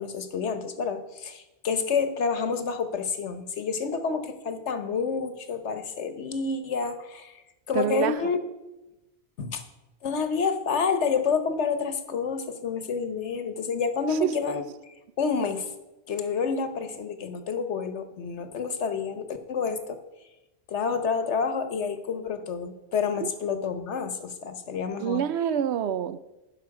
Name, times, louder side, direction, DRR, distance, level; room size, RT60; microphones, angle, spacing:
voice 1, 0.0-7.4 7.7-8.4 9.4-9.6 10.0-14.7 15.2-15.7 16.1-20.0 20.7-25.2, left 5 dB, 90° left, 1.3 m, -29 dB
voice 2, 7.7-8.2 14.2-14.3 23.2-23.3 25.0-26.2, right 9 dB, 75° right, 0.9 m, -26 dB
17.0 x 5.8 x 4.8 m
omnidirectional pair, 1.1 m